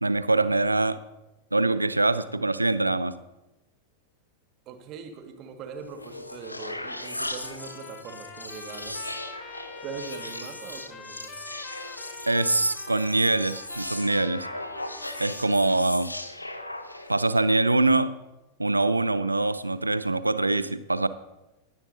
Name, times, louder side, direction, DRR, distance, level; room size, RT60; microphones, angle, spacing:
voice 1, 0.0-1.0 1.5-3.1 12.3-14.5 15.2-16.1 17.1-18.1 18.6-21.1, right 2 dB, 85° right, 16 dB, 0.5 m, -24 dB
voice 2, 4.6-9.0 9.8-11.4, right 5 dB, 35° right, 6 dB, 1.6 m, -41 dB
sound 1, 5.8-17.3, left 1 dB, 85° left, 0.8 m, -38 dB
Trumpet, 7.1-15.9, left 5 dB, 25° left, 1.1 m, -46 dB
19.0 x 10.5 x 2.6 m, 1.0 s
figure-of-eight pair, 90°, 0 cm